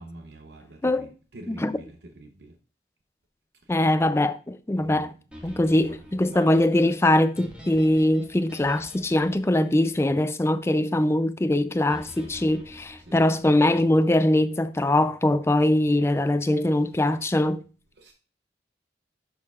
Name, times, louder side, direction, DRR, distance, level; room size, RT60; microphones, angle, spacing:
voice 1, 0.0-2.6 3.7-3.9 4.7-5.1 5.5-6.9 13.0-13.2 18.0-18.1, right 1 dB, 70° right, 0.9 m, -45 dB
voice 2, 1.5-1.8 3.7-5.1 5.4-17.6, left 1 dB, 15° left, 0.4 m, -22 dB
sound 1, 5.3-10.6 11.9-13.8, equal, 5° right, 1.5 m, -47 dB
11.0 x 6.5 x 2.4 m
head